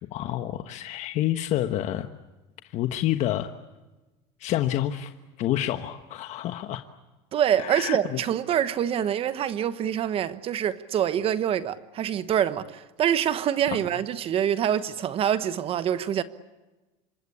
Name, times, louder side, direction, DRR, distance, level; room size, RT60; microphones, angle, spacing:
voice 1, 0.1-2.1 2.7-3.5 4.4-5.1 5.4-6.8 7.6-8.2 13.7-13.8, left 13 dB, 45° left, 1.3 m, -28 dB
voice 2, 7.3-16.2, right 9 dB, 35° right, 1.2 m, -25 dB
26.5 x 23.0 x 8.5 m
cardioid pair, 150°, 16 cm